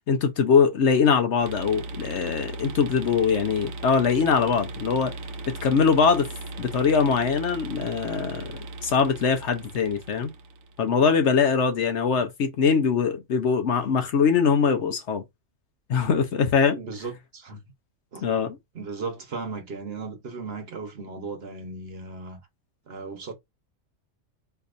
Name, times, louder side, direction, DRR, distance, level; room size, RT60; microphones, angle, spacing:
voice 1, 0.1-5.1 5.5-6.3 6.6-8.5 8.8-10.3 10.8-15.2 15.9-16.8 18.2-18.6, left 6 dB, 65° left, 1.0 m, -22 dB
sound 1, 1.4-10.9, right 2 dB, 80° right, 1.1 m, -37 dB
voice 2, 16.8-17.6 18.1-18.2 18.7-22.4 22.9-23.3, right 4 dB, 55° right, 1.1 m, -36 dB
4.5 x 2.8 x 2.5 m
omnidirectional pair, 1.4 m